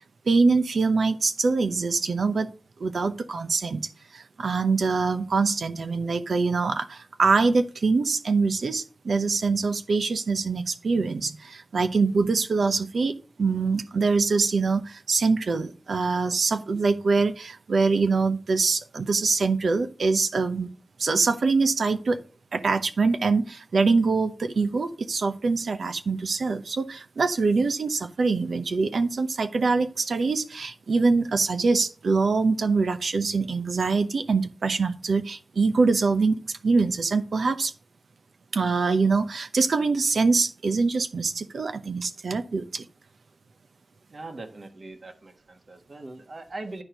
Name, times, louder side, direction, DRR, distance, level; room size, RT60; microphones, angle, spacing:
voice 1, 0.3-2.5 2.8-20.7 21.0-22.2 22.5-37.7 38.5-42.9, right 4 dB, 90° right, 10 dB, 0.7 m, -24 dB
voice 2, 44.1-46.8, right 2 dB, 55° right, 6 dB, 1.3 m, -40 dB
9.8 x 4.5 x 5.0 m, 0.37 s
wide cardioid pair, 110°, 0 cm